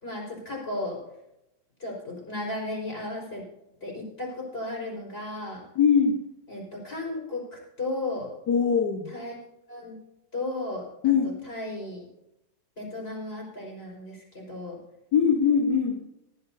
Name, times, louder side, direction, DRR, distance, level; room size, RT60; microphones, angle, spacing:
voice 1, 0.0-1.0 1.8-3.4 3.8-5.6 6.5-8.3 9.1-9.3 9.7-10.0 10.3-12.0 12.8-14.8, left 2 dB, 15° left, -2 dB, 5.2 m, -35 dB
voice 2, 5.7-6.2 8.5-9.1 11.0-11.3 15.1-16.0, left 6 dB, 50° left, 1 dB, 1.3 m, -21 dB
18.5 x 11.0 x 2.8 m, 0.85 s
omnidirectional pair, 3.8 m